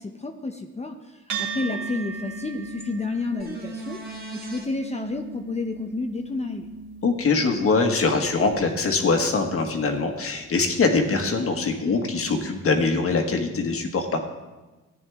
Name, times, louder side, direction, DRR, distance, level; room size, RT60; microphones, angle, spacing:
voice 1, 0.0-4.0 4.3-6.7, left 3 dB, 20° left, 5 dB, 0.8 m, -30 dB
sound 1, 1.3-10.0, right 4 dB, 70° right, 1.9 m, -38 dB
sound 2, 3.4-4.7 8.5-8.6, right 3 dB, 30° right, 1.8 m, -38 dB
voice 2, 7.0-14.2, left 4 dB, 45° left, 4 dB, 1.6 m, -23 dB
14.5 x 9.6 x 3.6 m, 1.2 s
cardioid pair, 90°, 30 cm